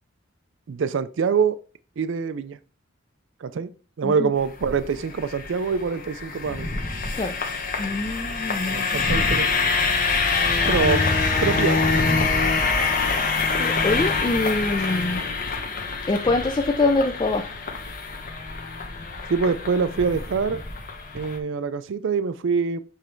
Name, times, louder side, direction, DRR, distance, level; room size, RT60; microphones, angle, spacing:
voice 1, 0.7-1.6 2.0-2.6 3.4-3.7 4.0-6.7 8.7-9.6 10.7-11.0 11.4-12.0 19.3-20.6 21.1-22.8, right 5 dB, 60° right, 13 dB, 0.4 m, -25 dB
sound 1, 4.4-21.4, left 4 dB, 40° left, 1.0 m, -25 dB
voice 2, 7.8-9.0 13.6-15.2 16.1-17.5, left 2 dB, 20° left, 6 dB, 0.3 m, -24 dB
7.3 x 3.3 x 4.4 m, 0.37 s
head